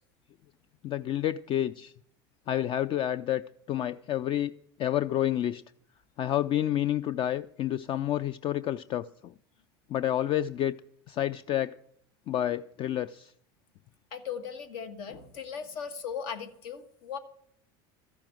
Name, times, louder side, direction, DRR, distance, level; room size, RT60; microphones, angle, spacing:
voice 1, 0.8-1.9 2.5-4.5 4.8-5.6 6.2-9.3 9.9-10.8 11.1-11.8 12.3-13.3, left 12 dB, 45° left, 16 dB, 0.4 m, -29 dB
voice 2, 14.1-17.2, left 7 dB, 75° left, 9 dB, 1.5 m, -38 dB
13.5 x 5.9 x 9.0 m, 0.69 s
supercardioid pair, 110°, 13 cm